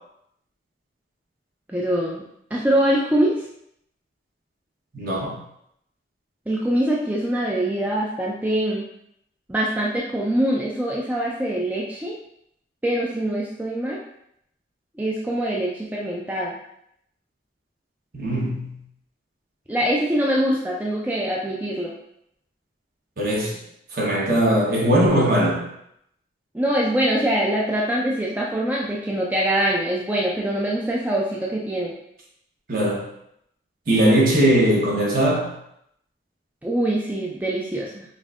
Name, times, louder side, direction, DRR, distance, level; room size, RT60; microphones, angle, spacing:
voice 1, 1.7-2.2 2.5-3.4 6.5-8.9 9.5-12.2 12.8-14.0 15.0-16.5 19.7-21.9 26.5-31.9 36.6-38.0, right 1 dB, 10° right, -4 dB, 0.3 m, -23 dB
voice 2, 4.9-5.4 18.1-18.8 23.2-23.6 23.9-25.6 32.7-33.1 33.9-35.5, right 1 dB, 55° right, -3 dB, 1.0 m, -20 dB
5.2 x 2.6 x 2.5 m, 0.75 s
head